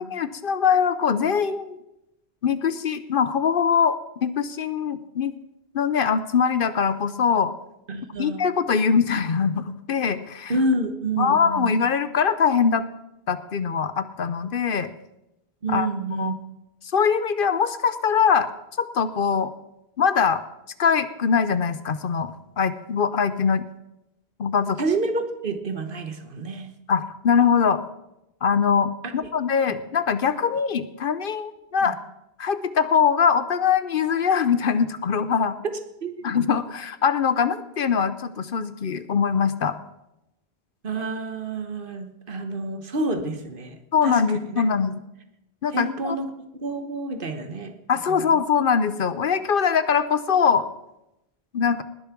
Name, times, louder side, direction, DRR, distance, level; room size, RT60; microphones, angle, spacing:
voice 1, 0.0-1.8 2.4-5.4 5.7-7.5 8.2-10.5 11.2-12.9 13.3-14.9 15.7-15.9 16.2-16.3 16.9-18.5 18.8-19.5 20.0-20.4 20.8-23.6 24.4-24.8 26.9-27.8 28.4-32.0 32.4-35.6 36.2-39.8 43.9-45.0 45.6-46.2 47.9-50.6 51.5-51.8, left 6 dB, 60° left, 14 dB, 0.8 m, -22 dB
voice 2, 7.9-8.4 10.5-11.7 15.6-16.4 24.8-26.7 29.0-29.2 31.8-31.9 35.7-36.3 40.8-44.2 44.5-44.6 45.7-47.7 48.1-48.4, right 2 dB, 55° right, 7 dB, 1.3 m, -29 dB
19.5 x 7.1 x 6.0 m, 0.89 s
omnidirectional pair, 1.1 m